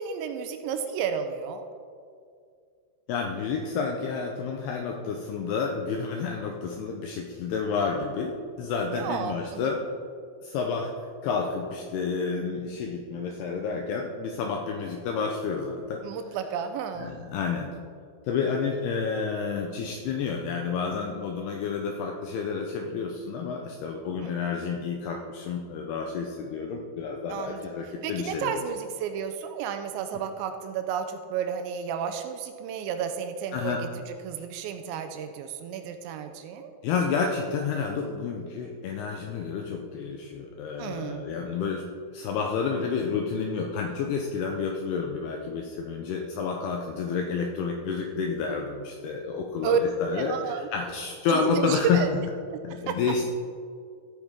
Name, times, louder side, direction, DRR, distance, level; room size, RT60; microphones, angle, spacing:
voice 1, 0.0-1.7 8.9-9.7 16.0-17.2 24.2-24.5 27.3-27.6 28.0-36.7 40.8-41.3 49.6-49.8 50.1-50.7 51.3-52.1 52.5-52.6 52.9-53.0, right 7 dB, 80° right, 7 dB, 2.8 m, -32 dB
voice 2, 3.1-9.8 10.4-10.9 11.2-16.0 17.0-17.7 18.3-28.5 33.5-33.8 36.8-41.8 42.1-52.0 52.6-53.3, left 5 dB, 80° left, 2 dB, 2.3 m, -30 dB
14.5 x 8.6 x 3.6 m, 2.2 s
omnidirectional pair, 5.4 m